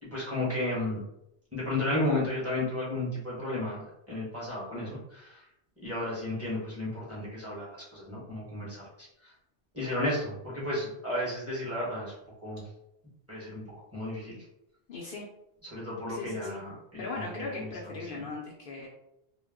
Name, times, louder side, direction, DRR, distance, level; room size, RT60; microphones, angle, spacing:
voice 1, 0.1-1.0 1.5-5.4 5.8-9.3 9.7-12.1 12.4-12.7 13.3-13.6 13.9-14.4 15.6-18.2, left 1 dB, 15° right, -7 dB, 0.7 m, -33 dB
voice 2, 14.9-15.3 16.1-16.6 17.0-18.9, left 3 dB, 60° left, -3 dB, 0.6 m, -38 dB
2.2 x 2.0 x 3.4 m, 0.83 s
omnidirectional pair, 1.2 m